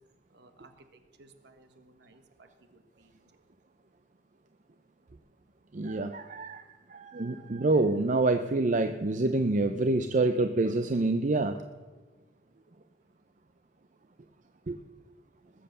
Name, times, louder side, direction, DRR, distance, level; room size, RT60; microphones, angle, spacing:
voice 1, 0.3-0.7 1.2-3.2, right 2 dB, 60° right, 7 dB, 1.5 m, -58 dB
voice 2, 5.7-6.6 6.9-11.5 14.7-14.8, right 2 dB, 40° right, 8 dB, 0.5 m, -27 dB
20.0 x 7.7 x 6.8 m, 1.3 s
head